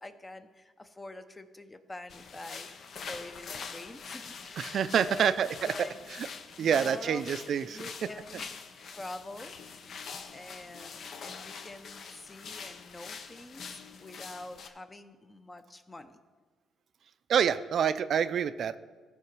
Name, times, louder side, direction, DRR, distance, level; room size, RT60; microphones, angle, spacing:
voice 1, 0.0-5.3 5.6-6.1 6.6-7.2 7.7-8.5 8.9-9.6 10.3-16.2, left 2 dB, 20° left, 9 dB, 0.7 m, -46 dB
sound 1, 2.1-14.7, left 5 dB, 60° left, 0.7 m, -44 dB
voice 2, 4.6-5.7 6.2-6.3 6.6-8.1 17.3-18.8, right 8 dB, 60° right, 14 dB, 0.4 m, -27 dB
15.0 x 5.0 x 4.7 m, 1.4 s
cardioid pair, 90°, 0 cm